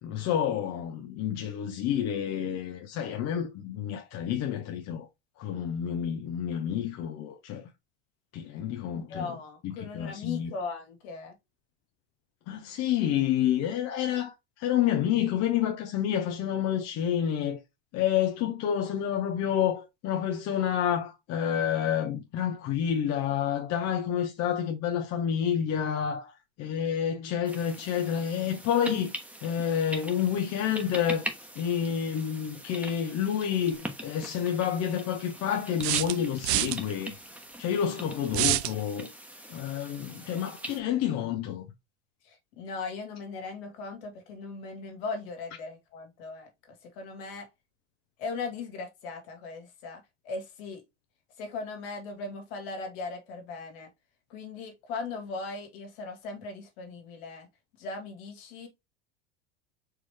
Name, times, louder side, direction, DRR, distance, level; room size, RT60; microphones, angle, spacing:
voice 1, 0.0-5.1 5.4-7.7 8.3-9.3 9.6-10.5 12.5-17.6 17.9-29.1 29.4-31.3 31.5-37.2 37.6-39.1 39.5-41.7, left 9 dB, 50° left, 0.9 m, -29 dB
voice 2, 8.9-11.4 42.2-47.5 48.2-50.8 51.4-53.9 54.3-57.5 57.8-58.7, left 4 dB, 70° left, 2.1 m, -38 dB
sound 1, 27.4-40.8, right 1 dB, 5° right, 1.2 m, -42 dB
sound 2, 33.7-33.8 35.8-36.8 38.3-38.7, right 17 dB, 70° right, 0.5 m, -26 dB
4.7 x 3.1 x 3.5 m
hypercardioid pair, 95°, 33 cm